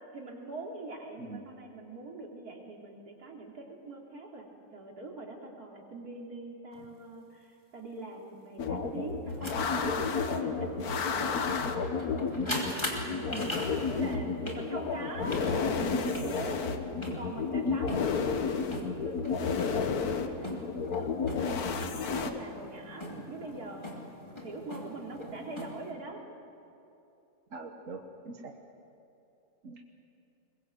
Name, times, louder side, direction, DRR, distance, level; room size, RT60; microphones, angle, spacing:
voice 1, 0.1-4.5 4.7-11.5 12.4-13.4 13.9-16.7 17.1-23.9 24.3-26.2, right 3 dB, 85° right, 0 dB, 3.5 m, -43 dB
sound 1, 6.7-6.9 8.8-25.9, left 1 dB, 20° left, 2.9 m, -42 dB
sound 2, 8.6-22.3, left 5 dB, 85° left, 1.7 m, -31 dB
voice 2, 27.5-28.5 29.6-29.8, right 3 dB, 60° right, 3 dB, 1.6 m, -42 dB
22.5 x 21.5 x 8.0 m, 2.8 s
omnidirectional pair, 1.6 m